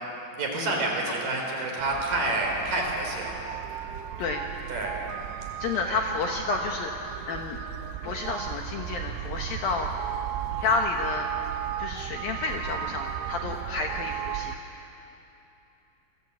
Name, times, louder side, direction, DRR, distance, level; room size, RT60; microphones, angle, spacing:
voice 1, 0.4-3.4 4.7-5.0 5.9-6.0 10.5-10.7, right 2 dB, 40° right, 0 dB, 5.3 m, -29 dB
sound 1, 1.8-14.6, right 12 dB, 80° right, 3.4 m, -35 dB
voice 2, 5.6-6.9 7.3-7.6 8.0-9.9 10.6-11.3 11.8-14.5, left 4 dB, 75° left, 2 dB, 2.2 m, -30 dB
28.0 x 23.5 x 8.4 m, 2.9 s
omnidirectional pair, 6.0 m